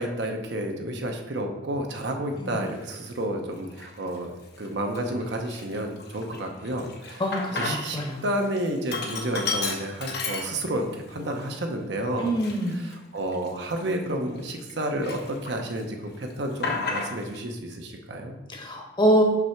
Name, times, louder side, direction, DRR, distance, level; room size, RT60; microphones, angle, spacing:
voice 1, 0.0-4.3 4.6-7.2 7.5-12.3 12.8-18.3, right 1 dB, 65° right, 3 dB, 0.8 m, -30 dB
Sink (filling or washing), 2.8-3.0 3.6-4.2 4.6-4.7 4.9-8.1 8.4-11.0 11.4-11.5 12.2-14.7 15.0-15.8 16.1-17.4, left 4 dB, 60° left, 0.9 m, -33 dB
voice 2, 7.2-8.2 12.2-12.8 18.5-19.2, equal, 25° left, 1 dB, 1.0 m, -25 dB
6.0 x 3.4 x 5.7 m, 1.0 s
head